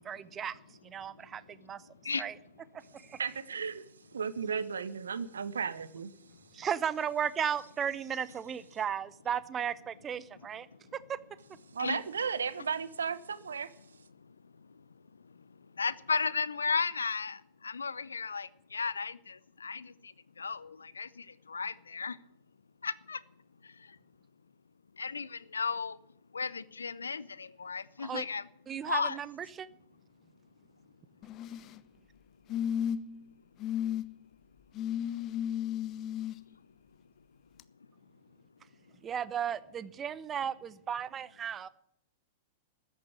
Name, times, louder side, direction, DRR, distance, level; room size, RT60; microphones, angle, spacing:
voice 1, 0.0-0.6 0.8-1.8 2.2-2.4 2.7-3.2 6.5-10.7 11.1-11.2 28.0-28.2 28.7-29.7 39.0-41.7, right 8 dB, 25° right, 0.8 m, -35 dB
voice 2, 3.2-3.9 4.1-6.1 11.7-13.7, right 6 dB, 70° right, 0.9 m, -34 dB
voice 3, 15.8-17.4 17.6-19.4 19.6-19.9 20.4-22.2 22.8-23.2 25.0-26.0 26.3-28.5 28.9-29.2, left 5 dB, 75° left, 0.7 m, -34 dB
sound 1, 31.2-31.8 32.5-33.2 33.6-34.0 34.8-36.4 37.6-37.7, left 9 dB, 35° left, 0.7 m, -34 dB
14.0 x 9.2 x 9.5 m
figure-of-eight pair, 100°, 0 cm